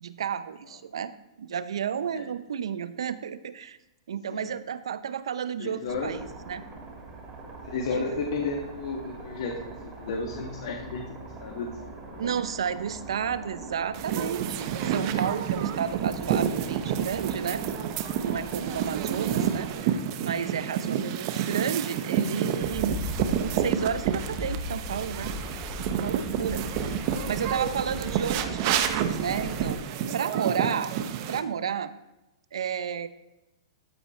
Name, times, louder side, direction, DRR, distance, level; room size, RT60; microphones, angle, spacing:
voice 1, 0.0-1.1 1.4-3.8 4.1-6.6 12.2-17.6 18.2-23.0 23.4-25.3 25.9-29.8 30.1-30.9 31.3-31.9 32.5-33.1, right 8 dB, 80° right, 14 dB, 0.7 m, -32 dB
voice 2, 5.6-6.2 7.7-12.3 18.6-18.7 20.6-20.9 26.2-26.4 30.0-30.2, left 3 dB, 65° left, 0 dB, 1.9 m, -34 dB
sound 1, 5.9-19.8, right 3 dB, 20° right, 2.8 m, -42 dB
sound 2, 13.9-31.4, right 9 dB, 50° right, 0.9 m, -29 dB
sound 3, 22.6-29.8, left 2 dB, ahead, 1.3 m, -37 dB
13.5 x 5.5 x 4.4 m, 0.98 s
hypercardioid pair, 130°, 3 cm